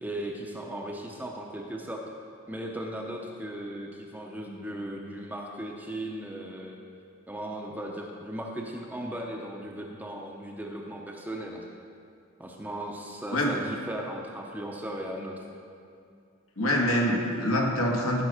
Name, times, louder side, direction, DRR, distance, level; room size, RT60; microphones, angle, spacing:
voice 1, 0.0-2.0 2.5-6.8 7.3-11.6 12.4-15.4, right 1 dB, 10° right, 0 dB, 0.7 m, -37 dB
voice 2, 16.6-18.2, equal, 70° left, -1 dB, 1.6 m, -25 dB
15.0 x 5.3 x 4.9 m, 2.4 s
head